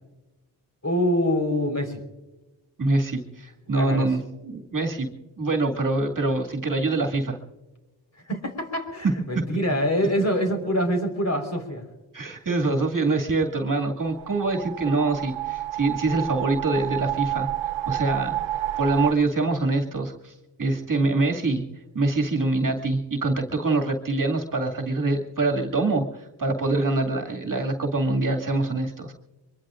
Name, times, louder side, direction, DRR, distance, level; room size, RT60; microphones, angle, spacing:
voice 1, 0.8-2.0 3.7-4.1 8.3-11.8, equal, 35° left, 4 dB, 4.4 m, -25 dB
voice 2, 2.8-5.1 5.4-7.4 12.1-18.4 18.8-20.3 20.6-21.6 21.9-29.1, right 2 dB, 40° right, 3 dB, 2.3 m, -25 dB
sound 1, 14.0-19.1, right 14 dB, 70° right, 0.7 m, -29 dB
23.5 x 23.0 x 2.5 m, 1.1 s
supercardioid pair, 45°, 48 cm